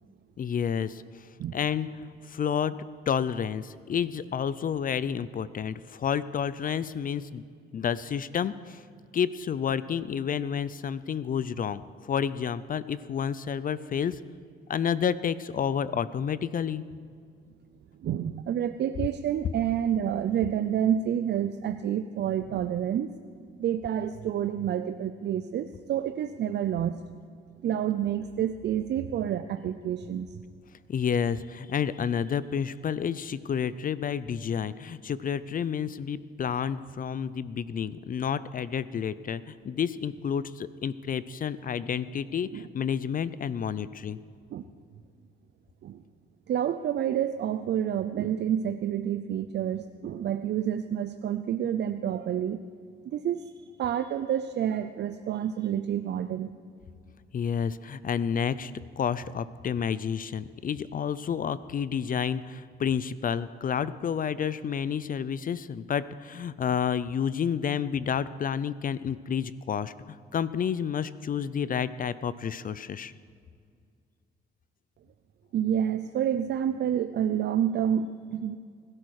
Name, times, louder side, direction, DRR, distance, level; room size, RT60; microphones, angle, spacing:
voice 1, 0.4-1.3 1.5-2.8 3.1-7.4 7.7-8.8 9.1-14.2 14.7-16.8 30.9-44.2 57.3-73.1, left 7 dB, 45° left, 16 dB, 0.5 m, -30 dB
voice 2, 18.0-23.1 23.6-27.0 27.6-30.3 42.5-42.7 44.5-44.6 45.8-46.0 46.5-52.6 53.1-53.5 53.8-56.5 75.5-78.5, right 9 dB, 60° right, 10 dB, 0.6 m, -28 dB
21.0 x 12.0 x 4.8 m, 2.2 s
cardioid pair, 90°, 20 cm